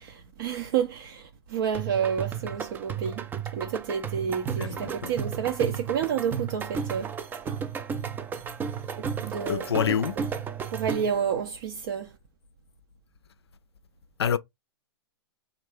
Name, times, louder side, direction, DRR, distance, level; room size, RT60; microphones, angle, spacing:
voice 1, 0.0-3.2 3.5-7.1 9.0-9.8 10.7-12.1, right 7 dB, 60° right, 0.5 m, -30 dB
sound 1, 1.7-11.3, right 7 dB, 15° right, 0.3 m, -33 dB
voice 2, 4.6-5.2 9.5-10.2 14.2-14.4, left 8 dB, 85° left, 0.4 m, -27 dB
3.1 x 2.4 x 3.5 m
hypercardioid pair, 115°, 13 cm